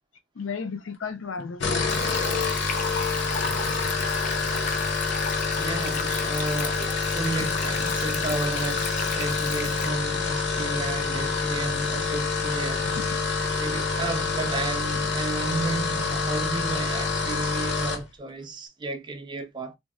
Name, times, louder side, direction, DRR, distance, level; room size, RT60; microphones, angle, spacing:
voice 1, 0.3-2.1 3.7-3.8 7.3-7.5 12.8-13.3, left 5 dB, 90° left, 0.6 m, -35 dB
sound 1, 1.5-18.0, left 4 dB, 65° left, 0.9 m, -27 dB
Stream, 1.9-9.9, left 6 dB, 40° left, 0.5 m, -36 dB
voice 2, 5.6-12.9 13.6-19.7, right 3 dB, 25° right, 0.4 m, -33 dB
2.5 x 2.1 x 3.6 m
head